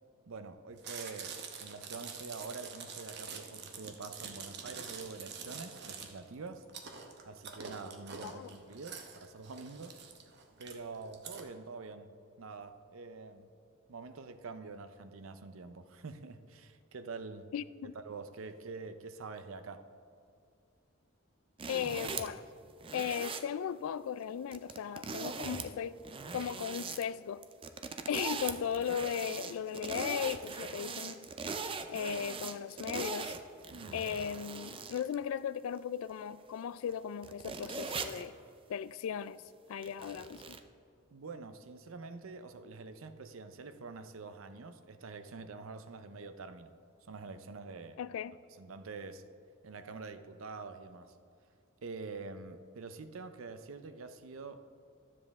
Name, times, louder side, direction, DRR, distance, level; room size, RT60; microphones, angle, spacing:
voice 1, 0.3-6.6 7.3-10.0 10.6-12.1 12.4-13.5 13.9-17.5 18.1-19.8 33.7-34.0 41.1-46.7 47.1-48.0 48.6-49.2 49.6-51.1 51.8-54.6, right 4 dB, 70° right, 10 dB, 0.6 m, -46 dB
Chewing mastication, 0.8-11.4, right 6 dB, 55° right, 0.9 m, -46 dB
voice 2, 17.5-17.9 21.7-22.4 22.9-26.0 26.3-27.4 28.1-31.3 31.9-33.3 33.9-38.4 38.7-39.4 39.7-40.6 48.0-48.4, left 8 dB, 80° left, 16 dB, 0.3 m, -37 dB
sound 1, 21.6-22.4 22.8-23.4 24.5-25.7 26.0-27.0 27.4-35.2 35.8-35.9 36.9-37.0 37.2-38.3 39.8-40.6, right 5 dB, 25° right, 0.4 m, -40 dB
12.5 x 7.4 x 3.5 m, 2.4 s
head